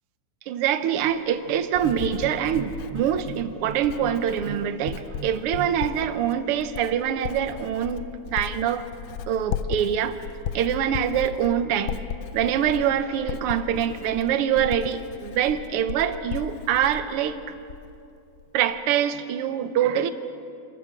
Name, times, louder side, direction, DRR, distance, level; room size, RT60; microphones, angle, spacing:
voice 1, 0.5-8.1 8.3-8.8 9.3-10.2 10.5-12.0 12.3-17.4 18.5-20.1, right 9 dB, 70° right, 10 dB, 1.4 m, -24 dB
Writing, 1.0-18.1 18.4-18.8, left 9 dB, 80° left, 1.4 m, -36 dB
27.5 x 14.0 x 7.6 m, 2.6 s
omnidirectional pair, 3.5 m